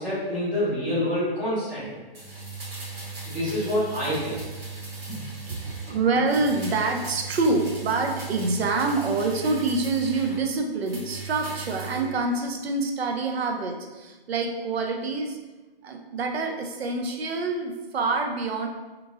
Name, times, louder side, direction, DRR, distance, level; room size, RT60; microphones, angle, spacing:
voice 1, 0.0-1.8 3.2-4.4 5.1-5.2, left 1 dB, 5° right, -15 dB, 0.8 m, -27 dB
sound 1, 2.1-6.0 6.3-10.4 10.8-12.1 12.4-12.5, right 3 dB, 70° right, 1.4 m, -38 dB
voice 2, 5.5-15.4 15.8-18.7, right 3 dB, 85° right, 3 dB, 0.6 m, -26 dB
2.9 x 2.4 x 3.6 m, 1.2 s
hypercardioid pair, 175°, 30 cm